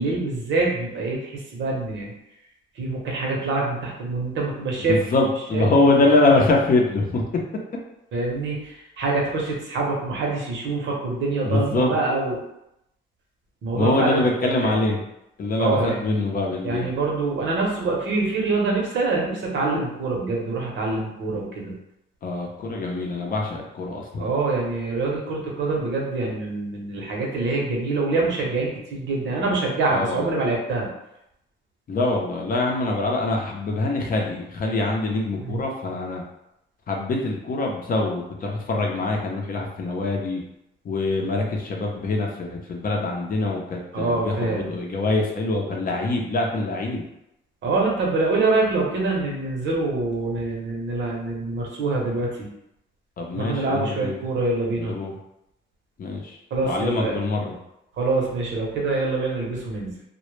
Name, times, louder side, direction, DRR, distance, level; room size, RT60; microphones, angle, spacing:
voice 1, 0.0-2.1 2.8-5.0 5.5-5.8 8.1-12.4 13.6-14.4 14.6-14.8 15.6-16.1 16.6-21.8 24.2-30.9 35.4-35.6 43.9-44.7 47.6-52.5 53.3-54.9 56.5-57.1 58.0-60.0, right 3 dB, 70° right, -2 dB, 0.8 m, -25 dB
voice 2, 4.8-7.2 11.4-11.9 13.7-15.0 15.4-16.9 22.2-24.3 29.9-30.3 31.9-36.2 36.9-40.4 40.8-47.1 53.2-54.2 54.8-55.1 56.0-57.5, left 2 dB, 45° left, 0 dB, 0.6 m, -24 dB
2.1 x 2.0 x 3.1 m, 0.84 s
cardioid pair, 90°, 20 cm